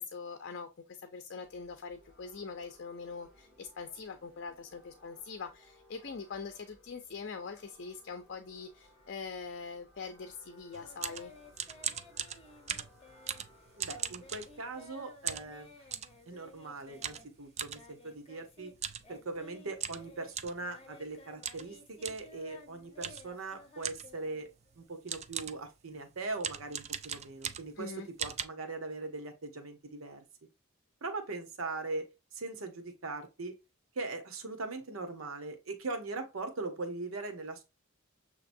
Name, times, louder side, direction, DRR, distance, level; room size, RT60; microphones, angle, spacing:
voice 1, 0.0-11.3 27.8-28.1, left 5 dB, 55° left, 0.6 m, -43 dB
sound 1, 1.4-14.9, left 1 dB, 5° right, 2.3 m, -62 dB
sound 2, 10.7-14.9 15.3-16.2 17.0-17.8 18.7-19.1 19.4-19.5 19.8-20.6 21.4-21.7 22.0-22.3 23.0-23.3 23.8-24.2 24.7-24.8 25.1-25.7 26.4-27.8 28.2-28.4, right 8 dB, 30° right, 0.4 m, -39 dB
Singing, 10.8-18.7 19.0-24.9, left 2 dB, 30° left, 1.0 m, -56 dB
voice 2, 13.8-15.9 16.3-18.7 19.1-30.2 31.0-33.6 33.9-37.6, right 3 dB, 80° right, 1.0 m, -40 dB
6.8 x 2.9 x 2.6 m
head